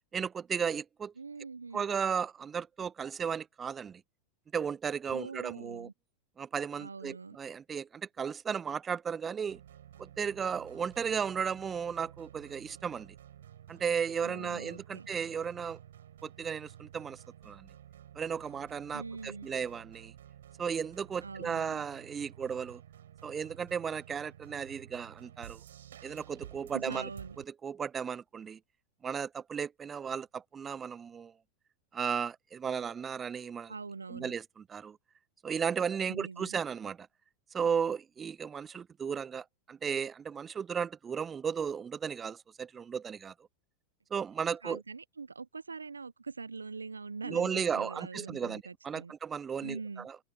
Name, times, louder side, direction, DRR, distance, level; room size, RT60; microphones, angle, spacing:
voice 1, 0.1-1.1 1.7-4.0 4.5-5.9 6.4-9.6 10.0-13.1 13.7-15.8 16.2-17.7 18.1-20.1 20.6-22.8 23.2-25.6 26.0-27.1 27.4-28.6 29.0-31.3 31.9-33.7 34.1-35.0 35.4-37.1 37.5-43.3 44.1-44.8 47.2-50.2, right 7 dB, 25° right, 0.3 m, -35 dB
voice 2, 1.2-1.8 5.1-5.9 6.8-7.4 14.2-15.1 18.9-19.5 21.2-21.8 26.7-27.4 33.7-34.3 36.1-36.5 44.6-49.1 49.6-50.1, right 4 dB, 85° right, 0.8 m, -43 dB
sound 1, 9.5-27.4, right 10 dB, 70° right, 6.5 m, -53 dB
open air
figure-of-eight pair, 90°, 0 cm